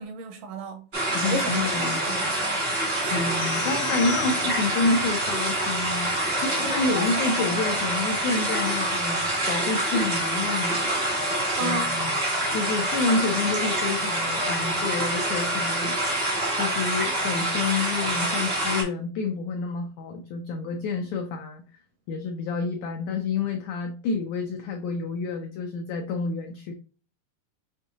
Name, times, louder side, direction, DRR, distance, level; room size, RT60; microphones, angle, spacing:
voice 1, 0.0-2.3 3.0-3.2 11.6-12.0, right 3 dB, 80° right, 2.0 m, -34 dB
sound 1, 0.9-18.8, right 1 dB, 50° right, 0.7 m, -26 dB
voice 2, 1.1-2.1 2.9-6.1 6.4-10.9 11.6-12.1 12.5-16.0 16.5-21.6 22.1-26.7, left 4 dB, 85° left, 1.6 m, -29 dB
sound 2, 3.4-4.9, left 12 dB, 60° left, 1.1 m, -39 dB
6.8 x 2.7 x 2.5 m
omnidirectional pair, 4.2 m